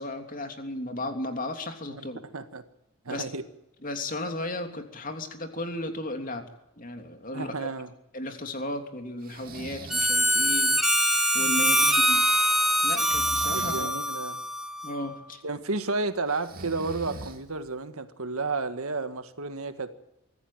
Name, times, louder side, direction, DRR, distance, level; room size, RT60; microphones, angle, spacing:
voice 1, 0.0-2.2 3.1-3.3 3.8-6.4 6.8-7.7 8.1-12.2 12.8-13.9 14.8-15.4, left 1 dB, 40° left, 5 dB, 3.1 m, -35 dB
voice 2, 1.9-2.6 3.1-3.4 7.3-7.9 11.4-12.1 13.5-14.4 15.4-19.9, right 3 dB, 75° right, 10 dB, 1.8 m, -32 dB
Breathing, 9.2-10.2 12.9-13.9 16.3-17.7, right 2 dB, 40° right, 2.9 m, -41 dB
Harmonica, 9.9-15.1, equal, ahead, 2.1 m, -24 dB
24.5 x 14.5 x 9.2 m, 0.88 s
head